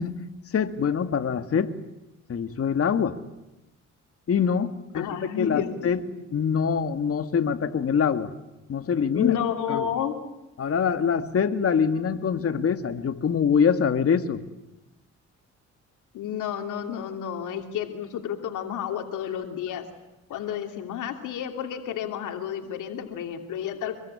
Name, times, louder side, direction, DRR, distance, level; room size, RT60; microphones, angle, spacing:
voice 1, 0.0-1.8 2.3-3.2 4.3-5.1 5.4-6.0 6.3-8.3 8.7-9.3 9.7-9.9 10.6-14.4, left 6 dB, 50° left, 9 dB, 2.1 m, -24 dB
voice 2, 4.9-6.3 9.1-10.1 16.1-19.8 20.3-24.0, left 9 dB, 80° left, 5 dB, 2.9 m, -31 dB
26.5 x 22.5 x 9.8 m, 0.95 s
cardioid pair, 90°, 30 cm